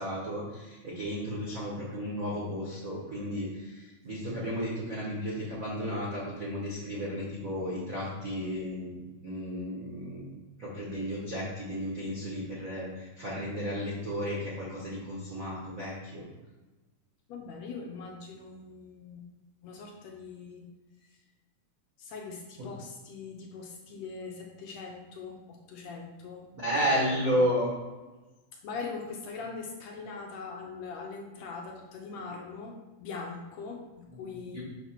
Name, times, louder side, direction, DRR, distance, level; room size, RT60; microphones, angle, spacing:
voice 1, 0.0-10.3 10.6-16.2 22.6-22.7 26.5-27.7 34.2-34.6, equal, 85° right, -6 dB, 0.7 m, -33 dB
voice 2, 17.3-20.7 21.0-21.1 22.0-26.4 26.8-27.4 28.6-34.6, left 4 dB, 75° left, 0 dB, 1.7 m, -42 dB
6.5 x 2.9 x 5.7 m, 1.2 s
omnidirectional pair, 3.6 m